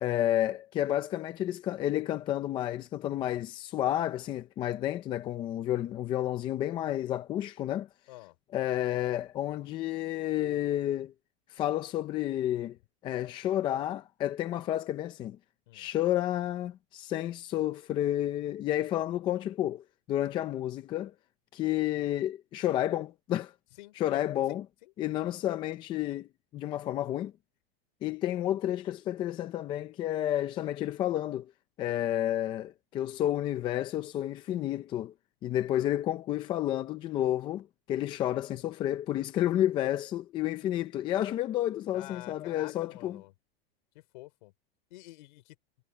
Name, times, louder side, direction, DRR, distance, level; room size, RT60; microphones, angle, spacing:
voice 1, 0.0-7.9 8.5-11.1 11.5-12.8 13.0-15.4 15.7-21.1 21.5-23.5 24.0-24.6 25.0-27.3 28.0-31.5 31.8-35.1 35.4-43.2, left 12 dB, 15° left, 0.5 m, -31 dB
voice 2, 23.8-24.2 24.5-24.9 41.9-43.3 43.9-44.5 44.9-45.6, left 20 dB, 50° left, 5.0 m, -48 dB
supercardioid pair, 165°, 30 cm